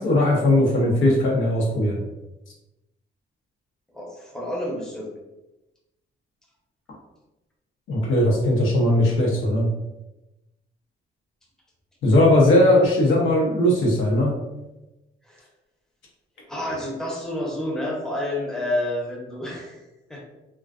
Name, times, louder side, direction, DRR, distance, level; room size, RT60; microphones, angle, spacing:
voice 1, 0.0-2.0 7.9-9.7 12.0-14.3, left 1 dB, 80° left, -2 dB, 0.7 m, -19 dB
voice 2, 3.9-5.1 15.3-15.4 16.5-19.8 20.1-20.2, left 1 dB, 5° left, -3 dB, 0.7 m, -29 dB
2.3 x 2.3 x 2.3 m, 0.99 s
cardioid pair, 90°, 20 cm